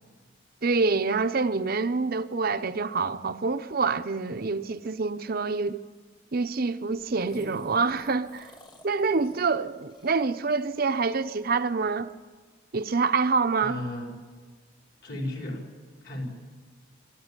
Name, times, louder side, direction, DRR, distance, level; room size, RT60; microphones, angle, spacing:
voice 1, 0.6-5.8 6.3-8.5 8.8-12.1 12.7-13.8, right 4 dB, 50° right, 0.7 m, -26 dB
sound 1, 7.0-11.6 12.1-12.2, left 1 dB, 25° left, 1.5 m, -49 dB
voice 2, 13.6-14.1 15.0-15.7 16.0-16.2, left 1 dB, 55° left, 5.0 m, -34 dB
23.5 x 14.0 x 8.9 m
head